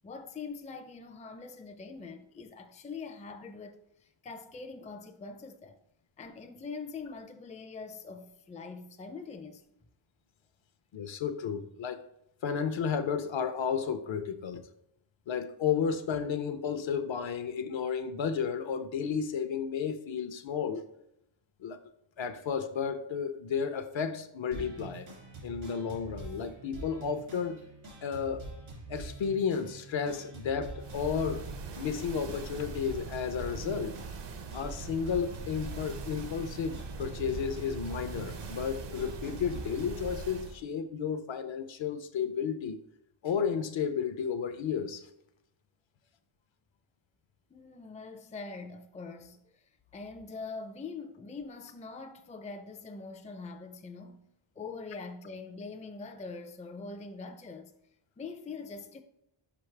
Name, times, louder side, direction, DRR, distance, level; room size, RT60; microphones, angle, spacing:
voice 1, 0.0-5.8 6.2-9.6 47.5-49.7 49.9-54.3 54.6-57.7 58.2-59.0, left 4 dB, 15° left, 0.4 m, -43 dB
voice 2, 10.9-12.0 12.4-14.6 15.3-20.8 21.6-21.8 22.2-25.1 25.4-27.6 28.0-28.5 28.9-31.5 31.8-34.0 34.5-42.8 43.2-45.1, left 7 dB, 65° left, 0.6 m, -32 dB
sound 1, 24.5-40.1, right 2 dB, 80° right, 2.4 m, -45 dB
sound 2, 30.8-40.6, right 4 dB, 60° right, 0.7 m, -42 dB
6.0 x 5.1 x 3.3 m
wide cardioid pair, 140°, 49 cm